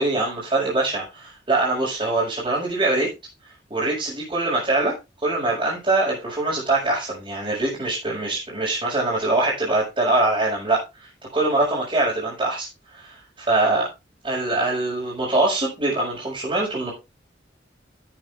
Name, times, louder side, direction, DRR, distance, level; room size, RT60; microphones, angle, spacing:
voice 1, 0.0-3.1 3.7-4.9 5.2-10.8 11.3-12.7 12.9-13.9 14.2-16.9, right 2 dB, 30° right, -8 dB, 5.8 m, -23 dB
11.5 x 8.8 x 3.5 m, 0.25 s
head